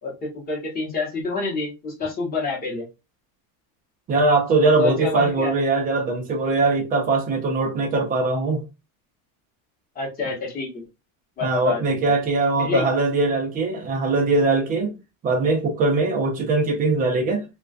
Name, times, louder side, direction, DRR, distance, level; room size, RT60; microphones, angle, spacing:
voice 1, 0.0-2.9 4.5-5.5 9.9-10.9 11.4-11.8 12.6-12.9, left 4 dB, 20° left, 0.9 m, -27 dB
voice 2, 4.1-8.6 11.4-15.0 15.2-17.4, right 3 dB, 20° right, 0.4 m, -21 dB
2.3 x 2.2 x 2.4 m
cardioid pair, 160°, 43 cm